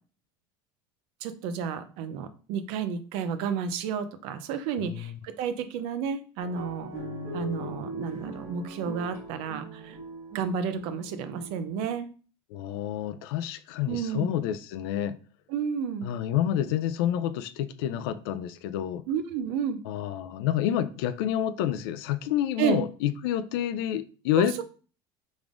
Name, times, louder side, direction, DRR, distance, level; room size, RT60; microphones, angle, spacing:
voice 1, 1.2-6.9 7.3-10.0 10.3-12.1 13.9-14.3 15.5-16.1 19.1-19.8 22.6-22.8 24.4-24.6, right 7 dB, 45° right, 0.5 m, -31 dB
voice 2, 4.8-5.1 12.5-15.2 16.0-19.0 19.9-24.6, left 11 dB, 65° left, 0.4 m, -28 dB
sound 1, 6.4-12.0, right 1 dB, 15° right, 2.2 m, -39 dB
5.1 x 3.6 x 2.5 m
cardioid pair, 180°, 13 cm